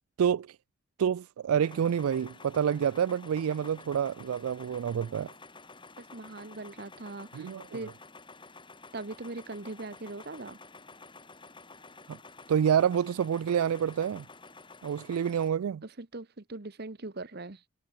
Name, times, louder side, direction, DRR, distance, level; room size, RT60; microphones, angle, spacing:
voice 1, 0.2-0.6 1.0-5.3 7.3-7.8 12.1-12.2 12.5-14.2 14.8-15.8, right 8 dB, 85° right, 0.3 m, -28 dB
sound 1, 1.6-15.5, left 3 dB, 20° left, 7.3 m, -51 dB
voice 2, 6.0-7.9 8.9-10.6 15.8-17.6, right 2 dB, 45° right, 1.1 m, -41 dB
head